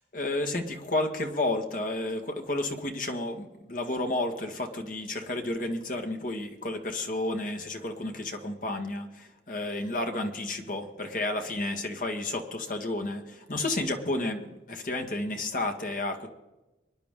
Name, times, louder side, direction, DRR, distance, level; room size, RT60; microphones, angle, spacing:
voice 1, 0.1-16.3, left 2 dB, 45° left, 5 dB, 1.6 m, -31 dB
25.0 x 10.5 x 3.7 m, 1.0 s
head